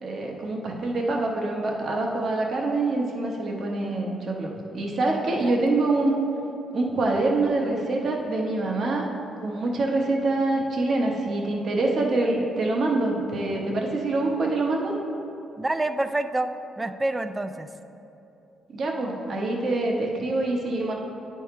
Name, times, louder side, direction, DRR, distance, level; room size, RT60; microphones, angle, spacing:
voice 1, 0.0-6.1 6.7-9.1 9.4-14.9 18.7-20.9, right 2 dB, 55° right, 0 dB, 1.0 m, -25 dB
voice 2, 15.6-17.7, right 2 dB, 15° right, 10 dB, 0.3 m, -27 dB
9.6 x 3.5 x 4.3 m, 2.9 s
cardioid pair, 90°, 0 cm